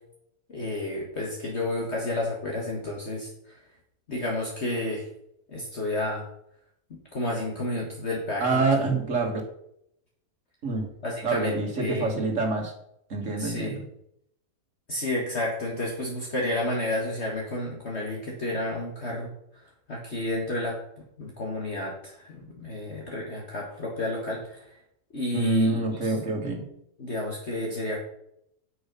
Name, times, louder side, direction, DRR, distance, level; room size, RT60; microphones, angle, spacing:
voice 1, 0.5-3.3 4.1-5.1 5.5-6.3 6.9-8.8 11.0-12.1 13.4-13.8 14.9-19.3 19.9-20.8 21.2-24.7 25.1-25.7 27.0-28.0, left 1 dB, 45° left, -2 dB, 2.0 m, -31 dB
voice 2, 8.4-9.4 10.6-10.9 11.2-12.7 13.1-13.8 25.3-26.6, right 3 dB, 50° right, 1 dB, 2.3 m, -26 dB
9.5 x 6.5 x 5.4 m, 0.75 s
omnidirectional pair, 1.7 m